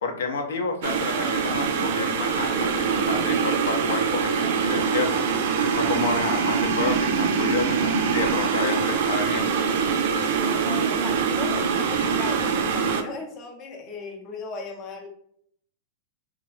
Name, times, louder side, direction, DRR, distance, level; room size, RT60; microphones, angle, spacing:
voice 1, 0.0-5.2 5.7-9.5, left 4 dB, 80° left, 4 dB, 0.7 m, -30 dB
sound 1, 0.8-13.0, right 6 dB, 65° right, 0.4 m, -24 dB
voice 2, 10.3-15.1, left 4 dB, 35° left, 2 dB, 0.6 m, -37 dB
2.9 x 2.4 x 3.2 m, 0.66 s
supercardioid pair, 140°, 0 cm